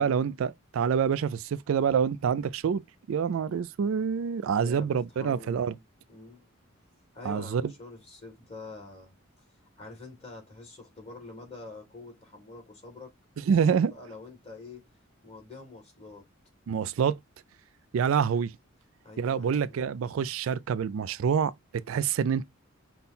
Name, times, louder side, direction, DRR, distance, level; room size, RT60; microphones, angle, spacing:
voice 1, 0.0-2.8 3.1-5.7 7.2-7.6 13.5-13.9 16.7-17.2 17.9-18.5 19.2-22.5, right 7 dB, 70° right, 0.3 m, -27 dB
voice 2, 4.6-4.9 5.2-5.8 6.1-6.5 7.1-9.1 9.8-13.1 13.7-14.8 15.2-16.2 19.0-19.8, left 3 dB, 30° left, 2.5 m, -46 dB
5.4 x 2.2 x 4.1 m
head